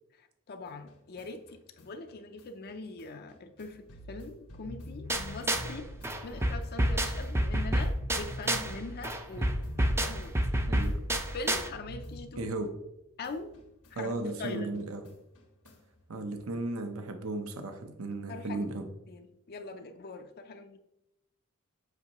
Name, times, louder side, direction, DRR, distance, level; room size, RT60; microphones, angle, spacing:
voice 1, 0.1-5.9 6.2-10.4 11.3-12.5 13.2-13.5 13.9-14.1 14.4-14.8 18.3-18.7 19.1-20.8, left 3 dB, 45° left, 6 dB, 0.5 m, -42 dB
sound 1, 0.7-12.9 13.2-16.0, equal, 90° left, 1.5 m, -46 dB
sound 2, 5.1-5.8 6.0-8.8 9.0-11.7, right 1 dB, 10° right, 0.5 m, -29 dB
voice 2, 10.7-11.0 12.4-12.7 14.0-15.1 16.1-18.9, right 2 dB, 70° right, 7 dB, 0.8 m, -35 dB
8.2 x 5.4 x 3.0 m, 0.86 s
head